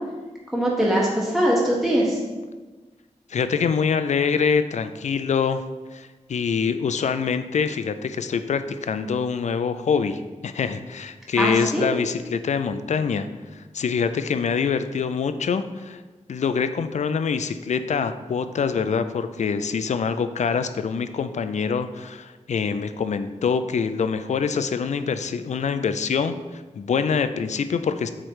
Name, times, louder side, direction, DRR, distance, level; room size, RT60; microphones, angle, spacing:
voice 1, 0.5-2.2 11.4-11.9, equal, ahead, -5 dB, 1.4 m, -21 dB
voice 2, 3.3-5.6 5.9-16.0 16.3-28.1, left 6 dB, 70° left, 10 dB, 0.4 m, -25 dB
7.5 x 3.2 x 4.7 m, 1.3 s
wide cardioid pair, 90°, 13 cm